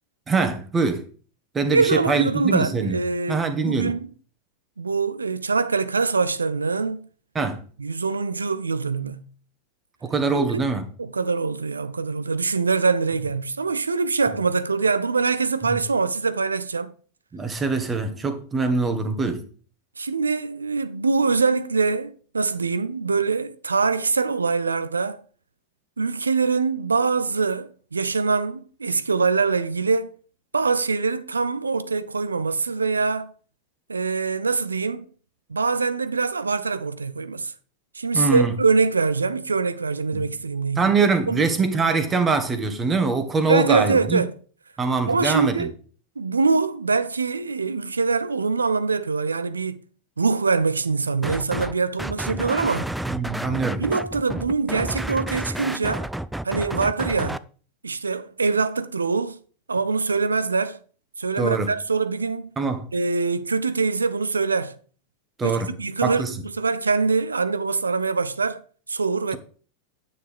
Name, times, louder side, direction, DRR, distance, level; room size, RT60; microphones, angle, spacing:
voice 1, 0.3-1.1 1.5-3.0 3.3-3.9 7.3-7.6 10.0-10.8 15.7-15.8 17.3-19.4 38.1-38.6 40.1-40.3 40.8-44.2 44.8-45.7 53.1-53.8 61.4-61.7 62.6-62.9 65.4-65.7 66.0-66.4, right 4 dB, 20° right, 1.5 m, -23 dB
voice 2, 1.7-4.1 4.8-7.1 7.8-9.3 10.3-10.7 11.0-16.9 20.0-25.2 26.0-30.1 30.5-33.3 33.9-35.1 35.5-37.5 38.0-40.9 41.3-41.4 43.5-44.3 45.1-45.7 46.2-49.8 50.2-52.9 53.8-56.1 56.4-57.4 57.8-59.4 59.7-60.8 61.2-62.5 62.9-64.8 65.4-68.6 68.9-69.4, right 4 dB, 80° right, 0.6 m, -24 dB
sound 1, 51.2-51.7 52.0-57.4, right 1 dB, 5° right, 0.4 m, -30 dB
9.6 x 6.6 x 3.5 m
figure-of-eight pair, 90°, 0 cm